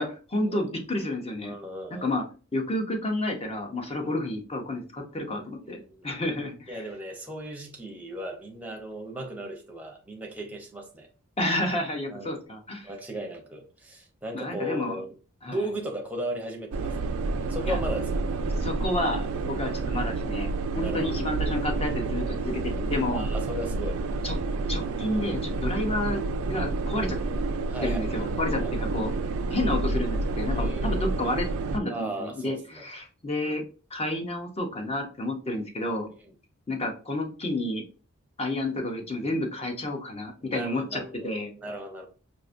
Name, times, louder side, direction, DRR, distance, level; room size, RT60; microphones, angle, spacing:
voice 1, 0.0-1.5 2.0-2.2 2.5-6.8 11.4-12.9 14.3-15.0 15.4-15.6 17.7-17.8 18.5-23.2 24.2-24.4 24.7-27.2 27.8-29.1 29.5-31.5 31.7-33.6 33.9-36.1 36.7-37.8 38.4-41.5, left 1 dB, 30° left, 0.7 m, -30 dB
voice 2, 1.4-2.1 5.6-6.1 6.7-11.1 12.1-12.4 12.8-15.1 15.5-17.1 17.5-18.2 20.8-21.4 23.1-24.0 25.7-25.9 27.0-27.1 27.7-28.3 28.6-28.7 30.5-31.1 31.9-32.8 36.2-36.3 40.4-41.3 41.6-42.1, right 1 dB, 5° right, 0.7 m, -36 dB
sound 1, 16.7-31.8, right 3 dB, 70° right, 0.4 m, -29 dB
4.7 x 2.5 x 2.5 m
head